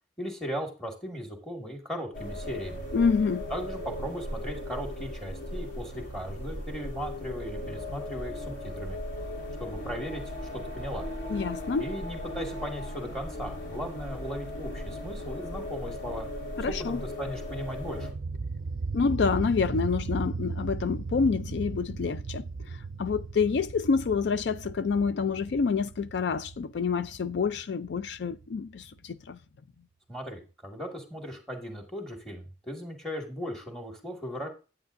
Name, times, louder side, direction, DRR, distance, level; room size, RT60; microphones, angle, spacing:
voice 1, 0.2-2.8 3.5-9.0 9.6-10.2 10.5-11.1 11.8-16.3 16.7-18.1 30.1-34.5, equal, 5° left, 2.0 m, -37 dB
sound 1, 2.1-18.1, left 1 dB, 90° left, 3.1 m, -37 dB
voice 2, 2.9-3.4 11.3-11.9 16.6-17.0 18.9-29.4, left 5 dB, 65° left, 0.4 m, -28 dB
sound 2, 17.4-29.0, right 4 dB, 45° right, 0.4 m, -37 dB
9.5 x 8.8 x 2.6 m
head